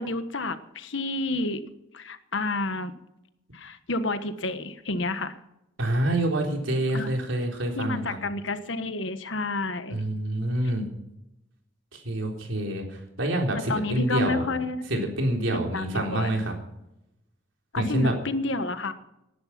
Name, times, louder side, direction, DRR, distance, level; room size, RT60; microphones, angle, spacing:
voice 1, 0.0-1.6 1.9-2.9 3.5-5.4 6.9-7.1 7.8-10.0 13.7-14.8 15.5-16.3 17.7-18.9, left 2 dB, 70° left, 11 dB, 1.3 m, -30 dB
voice 2, 5.8-8.2 9.9-10.9 11.9-12.9 13.2-14.4 14.9-16.6 17.8-18.1, right 1 dB, 75° right, 2 dB, 3.9 m, -27 dB
18.5 x 11.0 x 5.9 m, 0.87 s
head